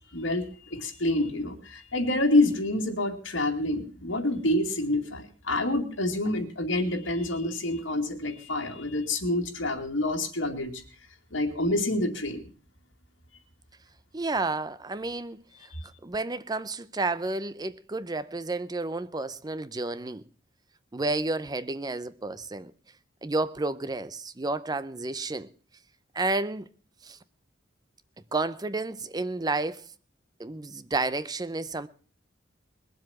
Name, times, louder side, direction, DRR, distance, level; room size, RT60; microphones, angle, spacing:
voice 1, 0.1-10.8 11.3-12.5 15.7-15.8, left 1 dB, 90° left, 2.4 m, -27 dB
voice 2, 14.1-15.4 16.0-20.2 20.9-22.7 23.2-25.5 26.1-26.7 27.0-27.2 28.3-29.8 30.4-31.9, right 2 dB, 20° right, 0.6 m, -31 dB
21.0 x 7.7 x 5.8 m
head